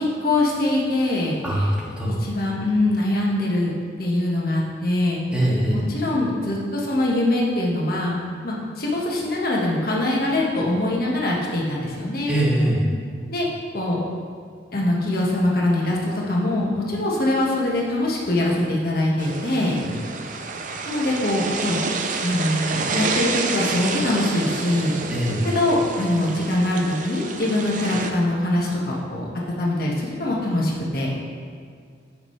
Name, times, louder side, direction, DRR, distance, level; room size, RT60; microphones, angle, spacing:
voice 1, 0.0-1.7 2.1-3.7 4.0-8.2 8.4-12.3 13.3-13.5 13.7-14.0 14.7-19.8 20.8-21.9 22.2-25.0 25.4-29.3 29.6-31.1, left 1 dB, 55° left, -3 dB, 1.6 m, -23 dB
voice 2, 1.4-2.1 5.3-5.7 12.3-12.8 25.1-25.4, right 1 dB, 5° right, -7 dB, 2.2 m, -22 dB
sound 1, 19.2-28.1, right 4 dB, 45° right, 0.7 m, -29 dB
14.5 x 6.2 x 3.3 m, 2.2 s
head